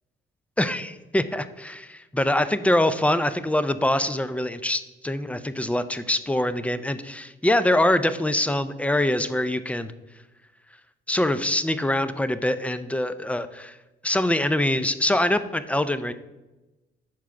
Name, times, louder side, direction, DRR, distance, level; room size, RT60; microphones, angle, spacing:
voice 1, 0.6-9.9 11.1-13.8 14.0-16.1, left 1 dB, 5° left, 12 dB, 0.4 m, -24 dB
6.0 x 4.7 x 5.7 m, 1.1 s
cardioid pair, 90°, 20 cm